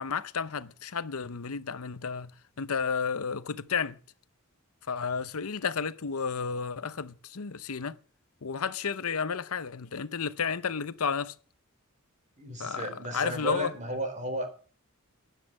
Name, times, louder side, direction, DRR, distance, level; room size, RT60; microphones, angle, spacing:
voice 1, 0.0-2.3 2.6-4.0 4.9-8.0 8.4-11.3 12.6-13.7, left 6 dB, 75° left, 0.8 m, -32 dB
voice 2, 12.4-14.5, right 1 dB, 35° right, 4.2 m, -34 dB
13.5 x 10.0 x 7.6 m
head